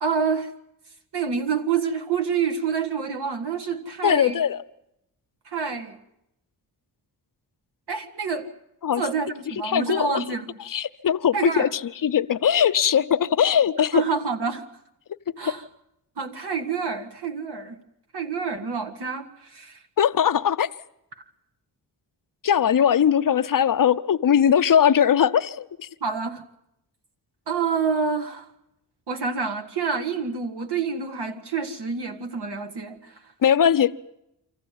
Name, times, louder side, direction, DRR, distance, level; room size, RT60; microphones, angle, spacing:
voice 1, 0.0-0.5 1.1-4.4 5.5-6.0 7.9-8.5 9.0-10.6 11.3-11.7 13.9-14.6 15.4-15.6 16.2-17.8 18.1-19.8 21.2-21.3 26.0-26.4 27.5-28.5 29.1-33.3, right 5 dB, 70° right, 2.0 m, -27 dB
voice 2, 4.0-4.6 8.8-9.0 9.6-10.2 10.7-14.0 15.4-15.5 20.0-20.7 22.4-25.9 33.4-33.9, left 8 dB, 50° left, 0.7 m, -20 dB
25.0 x 14.5 x 9.2 m
cardioid pair, 65°, 41 cm